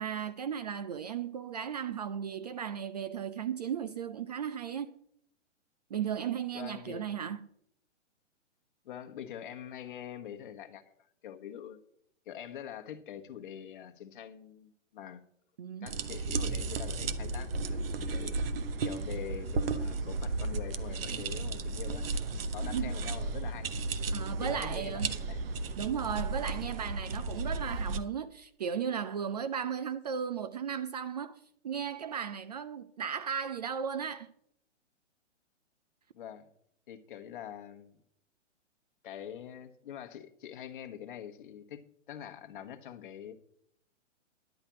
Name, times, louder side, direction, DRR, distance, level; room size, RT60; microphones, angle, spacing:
voice 1, 0.0-4.9 5.9-7.5 15.6-15.9 22.7-22.9 24.1-25.2 25.8-34.3, right 8 dB, 35° right, 0.4 m, -35 dB
voice 2, 6.5-7.1 8.8-11.8 12.2-15.2 15.8-18.4 18.8-22.2 22.5-23.7 24.4-25.4 36.1-36.5 36.9-38.0 39.0-41.8 42.1-43.3, left 9 dB, 45° left, 1.3 m, -44 dB
sound 1, 15.9-28.0, right 3 dB, 50° right, 0.9 m, -34 dB
10.5 x 5.6 x 8.6 m
figure-of-eight pair, 120°, 37 cm